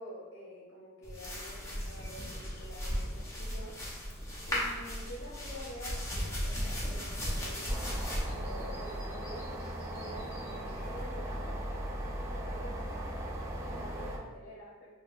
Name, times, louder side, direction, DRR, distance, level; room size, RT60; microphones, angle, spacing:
voice 1, 0.0-3.8 4.5-9.5 9.8-11.6 12.1-14.9, equal, 55° left, -5 dB, 0.8 m, -48 dB
sound 1, 1.0-11.0, equal, 15° left, 0.8 m, -37 dB
sound 2, 7.7-14.2, right 1 dB, 15° right, 0.4 m, -38 dB
5.3 x 2.3 x 2.5 m, 1.3 s
head